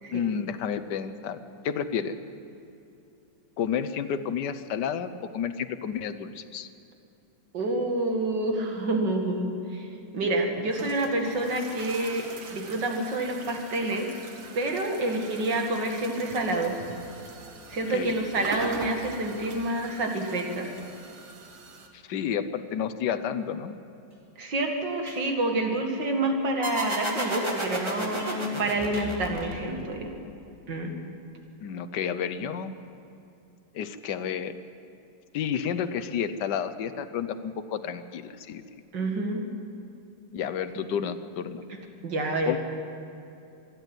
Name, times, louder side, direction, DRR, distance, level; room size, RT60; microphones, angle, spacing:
voice 1, 0.1-1.4 1.6-2.2 3.6-6.7 17.9-18.5 21.9-23.7 28.4-28.5 31.6-32.7 33.7-34.5 35.3-38.6 40.3-41.6 42.5-42.6, left 8 dB, 65° left, 11 dB, 1.4 m, -31 dB
voice 2, 7.5-9.9 10.1-12.2 12.5-14.2 14.5-16.8 17.7-20.7 24.4-30.1 30.7-30.9 38.9-39.4 40.8-40.9 42.0-42.5, right 2 dB, 65° right, 2 dB, 2.8 m, -28 dB
sound 1, 10.2-21.9, right 4 dB, 85° right, 2.3 m, -43 dB
sound 2, 24.1-24.2 25.0-25.3 27.2-28.6 28.9-29.8, right 1 dB, 30° right, 2.7 m, -47 dB
sound 3, 26.6-29.9, right 1 dB, 15° right, 2.1 m, -32 dB
26.5 x 11.0 x 9.2 m, 2.7 s
omnidirectional pair, 2.1 m